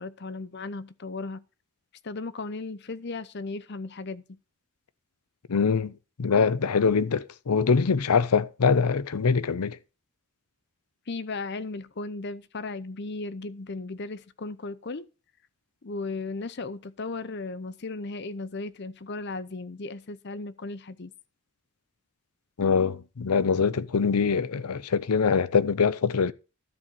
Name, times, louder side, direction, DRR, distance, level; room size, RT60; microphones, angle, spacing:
voice 1, 0.0-1.4 2.0-4.4 11.1-15.1 15.8-21.1, left 3 dB, 50° left, 0.7 m, -36 dB
voice 2, 5.5-5.9 6.2-9.8 22.6-26.3, left 5 dB, 90° left, 0.6 m, -23 dB
12.5 x 4.2 x 7.4 m
head